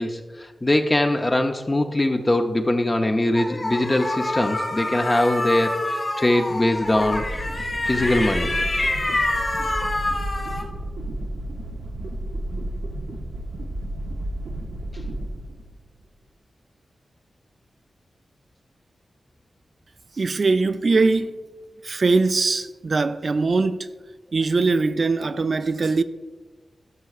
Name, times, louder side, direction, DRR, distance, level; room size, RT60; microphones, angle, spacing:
voice 1, 0.0-7.3 7.8-8.5, left 1 dB, 30° left, 0.5 m, -22 dB
sound 1, 3.4-10.6, left 2 dB, 45° left, 1.8 m, -26 dB
sound 2, 6.9-16.0, right 1 dB, 90° right, 0.7 m, -32 dB
voice 2, 20.2-21.3 21.8-23.9 24.3-26.0, right 3 dB, 60° right, 0.3 m, -21 dB
12.0 x 5.7 x 2.4 m
cardioid pair, 55°, 0 cm